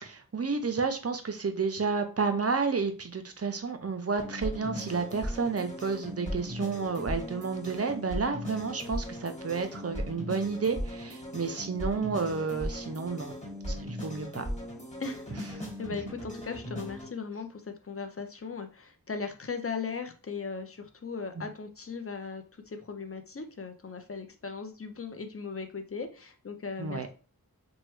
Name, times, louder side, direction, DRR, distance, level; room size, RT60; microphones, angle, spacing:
voice 1, 0.0-13.3 13.7-14.4 21.4-21.5 26.8-27.1, right 5 dB, 40° right, 7 dB, 0.5 m, -31 dB
sound 1, 4.2-17.1, equal, 20° left, 1.5 m, -38 dB
voice 2, 15.0-27.1, left 5 dB, 40° left, 7 dB, 0.6 m, -38 dB
3.0 x 2.2 x 3.1 m, 0.34 s
wide cardioid pair, 45°, 37 cm